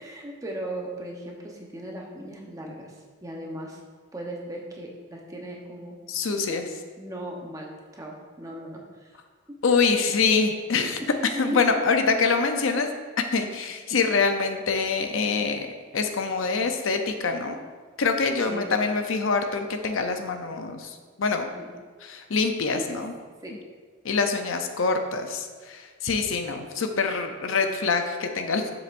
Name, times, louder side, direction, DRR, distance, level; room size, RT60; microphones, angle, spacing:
voice 1, 0.0-3.8 4.1-6.6 7.0-9.2 9.5-9.6 11.3-11.6 18.4-18.7 21.5-21.7 22.7-23.0 23.4-23.5, right 1 dB, 15° right, -1 dB, 0.9 m, -37 dB
voice 2, 6.1-6.6 9.6-11.0 11.4-12.9 13.3-15.7 15.9-17.6 18.0-21.5 22.0-23.1 24.0-28.7, left 4 dB, 75° left, 6 dB, 0.6 m, -25 dB
7.7 x 7.0 x 2.6 m, 1.5 s
head